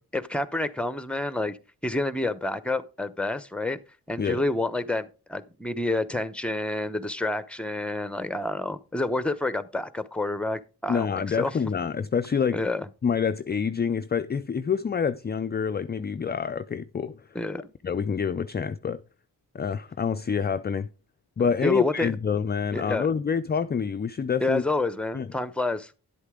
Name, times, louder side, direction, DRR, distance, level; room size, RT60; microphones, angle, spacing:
voice 1, 0.1-1.6 1.8-3.8 4.1-11.5 12.5-12.9 17.3-17.7 21.6-22.1 22.7-23.1 24.4-25.9, left 2 dB, 5° left, 0.8 m, -28 dB
voice 2, 10.9-12.6 13.0-17.2 17.8-19.0 19.5-20.9 21.4-24.6 25.1-25.3, left 6 dB, 25° left, 0.4 m, -27 dB
11.0 x 8.1 x 3.7 m
cardioid pair, 60°, 40 cm